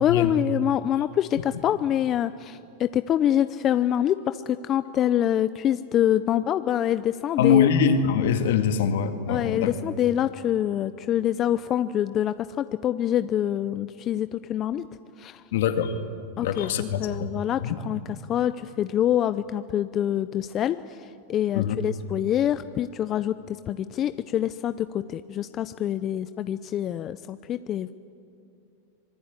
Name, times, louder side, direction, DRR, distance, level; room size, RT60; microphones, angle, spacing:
voice 1, 0.0-7.7 9.3-14.9 15.2-15.4 16.4-18.0 18.3-27.9, left 11 dB, 35° left, 12 dB, 0.6 m, -26 dB
voice 2, 7.4-9.7 15.5-15.9 16.4-17.3 17.6-17.8 21.5-21.8, left 7 dB, 70° left, 7 dB, 2.2 m, -23 dB
25.5 x 19.5 x 9.7 m, 2.6 s
hypercardioid pair, 120°, 0 cm